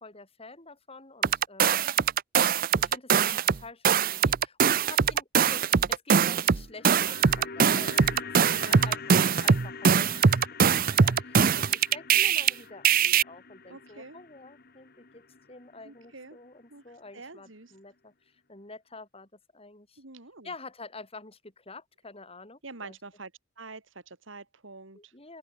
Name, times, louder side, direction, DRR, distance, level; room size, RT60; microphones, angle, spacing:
voice 1, 0.0-1.9 2.8-8.3 8.6-10.4 10.7-20.0 20.4-23.0 24.9-25.4, left 3 dB, 30° left, 5.8 m, -48 dB
sound 1, 1.2-3.6 3.8-12.5 12.8-13.2, right 7 dB, 45° right, 0.6 m, -22 dB
sound 2, 6.6-16.8 17.0-17.1, left 5 dB, 50° left, 1.7 m, -45 dB
voice 2, 8.5-8.9 13.7-14.2 15.8-16.4 16.7-16.8 17.1-17.7 20.0-20.5 22.6-23.3 23.6-25.1, right 3 dB, 70° right, 2.6 m, -46 dB
open air
head